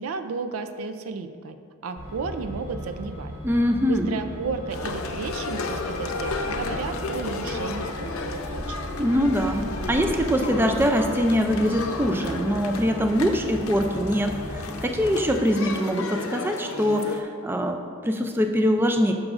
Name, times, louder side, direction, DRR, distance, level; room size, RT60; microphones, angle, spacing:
voice 1, 0.0-1.6 1.8-3.3 3.8-8.8, right 4 dB, 85° right, 9 dB, 0.4 m, -33 dB
Truck, 2.0-15.3, equal, 25° right, 1.9 m, -37 dB
voice 2, 3.4-4.1 9.0-19.1, equal, 10° right, 4 dB, 0.3 m, -23 dB
sound 1, 4.7-17.2, left 3 dB, 80° left, 0.6 m, -33 dB
11.0 x 6.2 x 2.5 m, 2.2 s
head